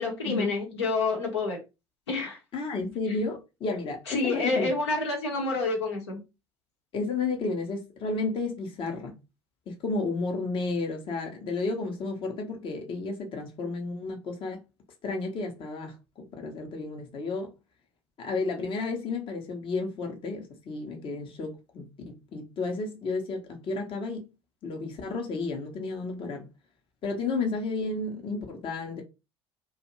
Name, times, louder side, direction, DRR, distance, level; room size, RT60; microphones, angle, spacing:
voice 1, 0.0-1.6 2.1-2.4 4.1-6.2, left 3 dB, 75° left, 1.0 m, -28 dB
voice 2, 2.5-4.7 6.9-9.1 9.7-14.6 15.0-17.5 18.2-24.2 24.6-26.4 27.0-29.0, left 3 dB, 40° left, 0.8 m, -32 dB
2.5 x 2.3 x 2.9 m
figure-of-eight pair, 65°, 14 cm